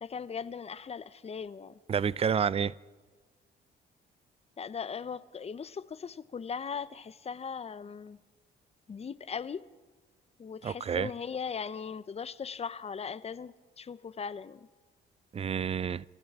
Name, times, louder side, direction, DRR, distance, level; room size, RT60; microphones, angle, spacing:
voice 1, 0.0-1.8 4.6-8.2 8.9-9.6 10.4-14.7, left 6 dB, 30° left, 0.6 m, -39 dB
voice 2, 1.9-2.7 10.6-11.1 15.3-16.0, right 7 dB, 30° right, 0.4 m, -29 dB
28.0 x 14.0 x 3.6 m
cardioid pair, 90°, 20 cm